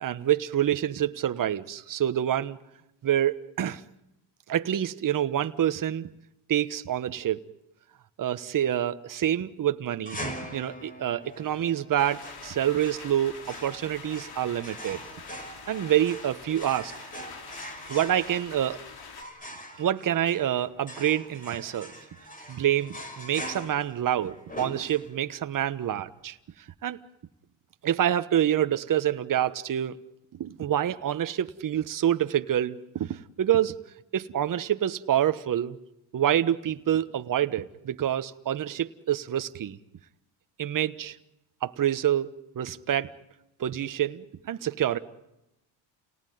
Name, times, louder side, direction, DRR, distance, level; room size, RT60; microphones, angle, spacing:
voice 1, 0.0-2.6 3.0-3.8 4.5-6.1 6.5-7.4 8.2-10.2 10.5-15.0 15.7-16.9 17.9-18.8 19.8-21.9 22.5-26.4 26.8-27.0 27.8-30.0 30.4-33.8 34.1-35.8 36.1-39.8 40.6-41.2 41.6-43.1 43.6-45.0, right 11 dB, 45° right, 1.3 m, -27 dB
sound 1, 10.0-25.4, equal, 20° left, 5.1 m, -42 dB
sound 2, 12.0-19.2, left 5 dB, 55° left, 3.6 m, -45 dB
30.0 x 18.5 x 9.5 m
cardioid pair, 100°, 44 cm